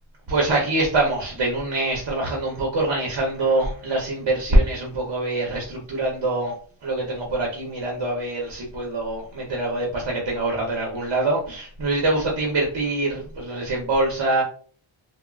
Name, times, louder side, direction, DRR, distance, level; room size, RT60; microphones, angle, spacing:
voice 1, 0.3-6.6 6.8-14.4, right 2 dB, 60° right, -1 dB, 0.8 m, -24 dB
3.5 x 2.1 x 2.3 m, 0.43 s
wide cardioid pair, 170°, 49 cm